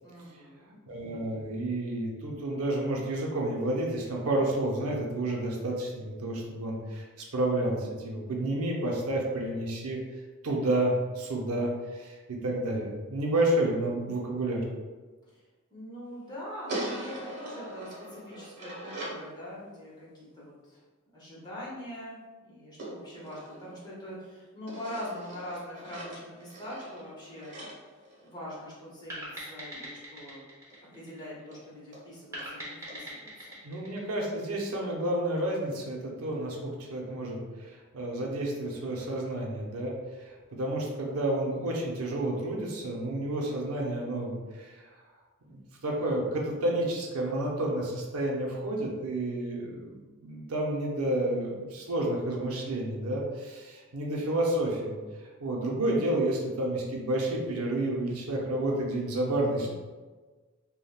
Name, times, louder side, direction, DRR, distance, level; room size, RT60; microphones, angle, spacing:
voice 1, 0.0-0.8 15.3-15.4 15.7-20.1 20.3-20.8 21.1-27.5 28.2-30.4 30.9-33.5 59.6-59.7, equal, 20° left, -7 dB, 0.8 m, -43 dB
voice 2, 0.9-10.0 10.4-14.6 33.6-44.9 45.5-55.0 55.4-59.7, right 1 dB, 90° right, -1 dB, 0.6 m, -30 dB
sound 1, 16.7-19.3 22.8-24.2 24.7-28.8 30.7-30.8 31.1-31.2 31.5-31.6 31.9-32.0 32.4-32.5 32.9-33.0, right 1 dB, 55° right, 1.2 m, -41 dB
sound 2, 29.1-31.6 32.3-34.9, equal, 15° right, 0.7 m, -42 dB
3.4 x 2.2 x 2.3 m, 1.3 s
head